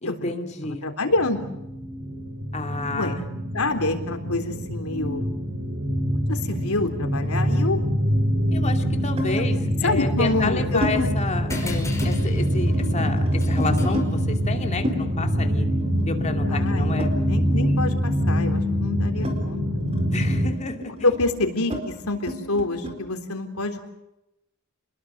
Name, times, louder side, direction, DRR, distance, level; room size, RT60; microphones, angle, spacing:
voice 1, 0.0-0.8 2.5-3.2 8.5-15.7 16.1-17.1 17.6-17.8 20.1-21.1, left 3 dB, 30° left, 5 dB, 2.5 m, -31 dB
voice 2, 0.8-1.4 2.9-3.2 3.5-5.3 6.1-7.8 9.3-9.4 9.8-11.2 16.5-19.6 21.0-23.9, left 2 dB, 80° left, 5 dB, 3.7 m, -27 dB
sound 1, 1.1-20.5, equal, 70° right, 4.9 m, -24 dB
sound 2, 6.3-7.9 9.2-9.4 10.2-11.0 11.3-11.7 11.9-14.1 14.8-17.7 18.0-23.0, equal, 30° right, 4.5 m, -34 dB
sound 3, 11.5-16.4, left 2 dB, 15° left, 5.4 m, -39 dB
29.0 x 21.0 x 6.7 m, 0.93 s
head